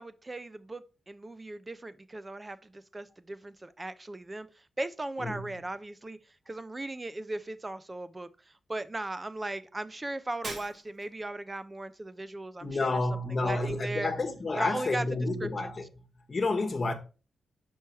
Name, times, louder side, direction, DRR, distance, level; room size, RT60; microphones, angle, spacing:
voice 1, 0.0-6.2 6.5-13.0 13.3-14.1 14.6-15.1 15.4-15.7, right 2 dB, 20° right, 0.4 m, -38 dB
Shatter, 10.4-11.2, right 2 dB, 45° right, 1.5 m, -41 dB
voice 2, 12.6-15.8 16.3-16.9, left 2 dB, 30° left, 1.3 m, -30 dB
5.7 x 4.6 x 4.7 m
wide cardioid pair, 130°, 0 cm